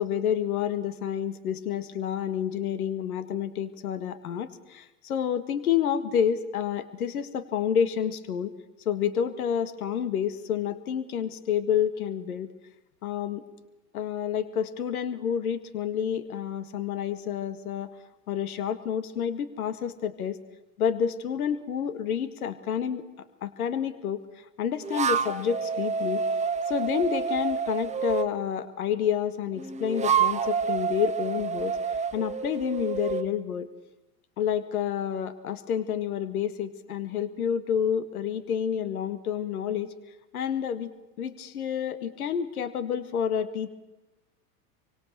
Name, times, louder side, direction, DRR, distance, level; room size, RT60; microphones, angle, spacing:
voice 1, 0.0-8.5 8.9-12.5 13.0-13.5 13.9-17.9 18.3-20.4 20.8-23.0 23.4-24.2 24.6-26.2 26.7-31.8 32.1-33.7 34.4-39.9 40.3-40.9 41.2-43.7, left 8 dB, 65° left, 12 dB, 2.0 m, -29 dB
sound 1, 24.8-28.3 29.6-33.3, right 6 dB, 15° right, 1.6 m, -28 dB
28.0 x 24.5 x 6.8 m, 0.99 s
figure-of-eight pair, 85°, 47 cm